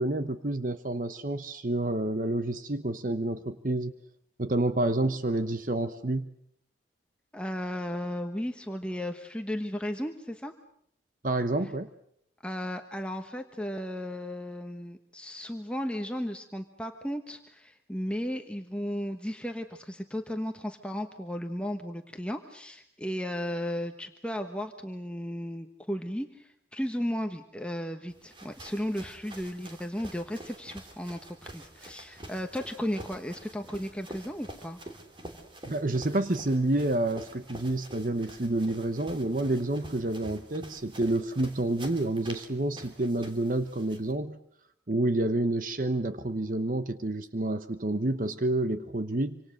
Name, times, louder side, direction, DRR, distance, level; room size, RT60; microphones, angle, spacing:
voice 1, 0.0-3.9 4.4-6.3 11.2-11.9 35.6-44.4 44.9-49.4, right 2 dB, 50° right, 10 dB, 1.0 m, -29 dB
voice 2, 7.3-10.5 12.4-34.8, equal, 5° left, 4 dB, 1.2 m, -35 dB
sound 1, 28.1-44.1, right 1 dB, 30° right, 3.1 m, -47 dB
27.0 x 26.0 x 6.5 m, 0.71 s
head